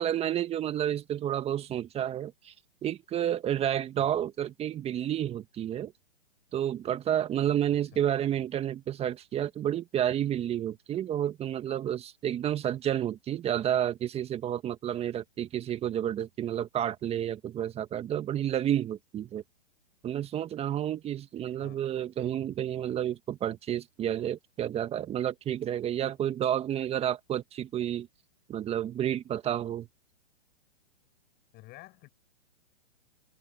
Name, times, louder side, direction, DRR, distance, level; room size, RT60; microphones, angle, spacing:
voice 1, 0.0-2.5 2.8-5.9 6.5-19.4 20.0-28.1 28.5-29.9, right 10 dB, 20° right, 1.6 m, -30 dB
voice 2, 7.7-8.1 21.6-21.9 31.5-32.1, left 20 dB, 30° left, 6.8 m, -51 dB
hypercardioid pair, 125°, 31 cm